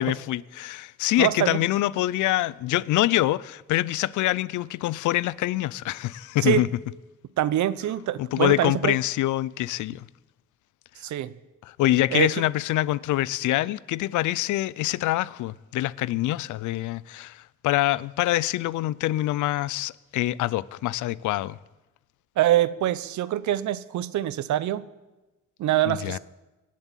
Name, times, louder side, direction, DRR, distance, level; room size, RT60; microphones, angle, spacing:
voice 1, 0.0-6.7 8.2-10.1 11.7-21.6 25.8-26.2, left 16 dB, 80° left, 0.5 m, -25 dB
voice 2, 1.2-1.6 6.4-6.6 7.4-8.9 11.0-11.3 12.1-12.3 22.4-24.8 25.6-26.2, right 13 dB, 70° right, 0.7 m, -24 dB
18.5 x 7.5 x 7.4 m
cardioid pair, 90°, 30 cm